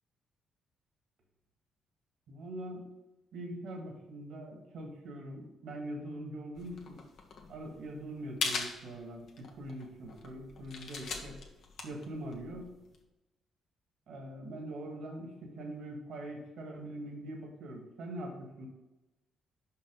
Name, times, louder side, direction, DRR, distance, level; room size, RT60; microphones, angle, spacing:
voice 1, 2.3-2.9 3.3-7.0 7.5-11.4 11.8-12.7 14.1-18.7, right 1 dB, 70° right, 1 dB, 1.8 m, -43 dB
sound 1, 6.5-13.0, left 4 dB, 65° left, 1.2 m, -41 dB
5.8 x 5.5 x 5.3 m, 1.0 s
cardioid pair, 90°, 0 cm